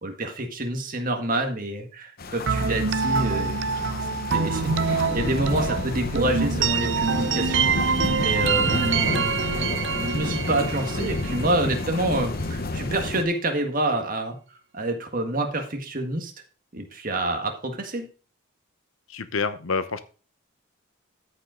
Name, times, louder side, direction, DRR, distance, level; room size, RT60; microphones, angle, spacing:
voice 1, 0.0-3.8 4.3-7.7 8.1-9.3 9.9-16.3 16.7-18.1, right 1 dB, 40° right, 4 dB, 1.7 m, -27 dB
sound 1, 2.2-13.2, left 2 dB, 45° left, 0.7 m, -31 dB
sound 2, 2.5-12.2, right 5 dB, 60° right, 0.6 m, -26 dB
voice 2, 19.1-20.0, left 4 dB, 75° left, 12 dB, 0.9 m, -28 dB
13.5 x 5.4 x 3.8 m, 0.35 s
head